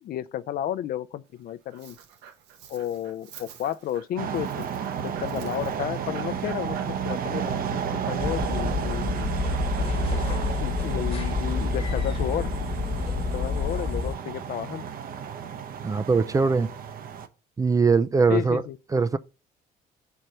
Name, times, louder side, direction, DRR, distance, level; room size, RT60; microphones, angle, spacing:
voice 1, 0.0-2.0 2.7-4.7 5.0-9.3 10.6-12.5 13.3-14.8 18.3-18.8, left 11 dB, 60° left, 0.5 m, -32 dB
Dog, 1.2-12.0, right 8 dB, 90° right, 1.4 m, -50 dB
sound 1, 4.2-17.3, right 8 dB, 60° right, 0.9 m, -32 dB
sound 2, 8.2-14.2, left 4 dB, 35° left, 1.2 m, -28 dB
voice 2, 15.8-16.7 17.6-18.6 18.9-19.2, right 4 dB, 20° right, 0.4 m, -21 dB
6.5 x 4.6 x 5.6 m
cardioid pair, 110°, 17 cm